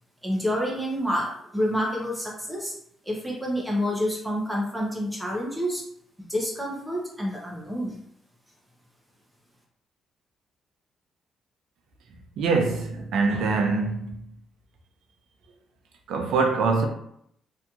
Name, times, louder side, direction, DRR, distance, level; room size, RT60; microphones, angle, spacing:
voice 1, 0.2-2.7 3.1-5.8 6.3-8.0, equal, ahead, 0.6 m, -28 dB
voice 2, 12.4-14.2 16.1-16.9, right 4 dB, 75° right, 0.4 m, -24 dB
2.9 x 2.6 x 2.3 m
cardioid pair, 180°, 0 cm